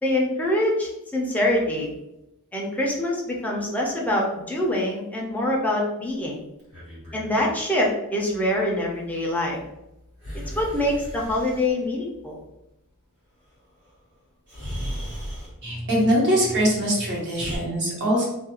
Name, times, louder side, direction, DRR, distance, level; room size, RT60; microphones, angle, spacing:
voice 1, 0.0-1.9 2.5-6.4 7.1-9.6 10.3-12.4, left 1 dB, 5° left, -3 dB, 0.5 m, -25 dB
Breathing, 6.6-7.5 10.2-11.7 13.8-13.9 14.5-15.6 16.5-17.6, equal, 85° right, 1.4 m, -36 dB
voice 2, 15.6-18.2, equal, 55° right, -4 dB, 1.0 m, -22 dB
2.4 x 2.2 x 2.9 m, 0.90 s
head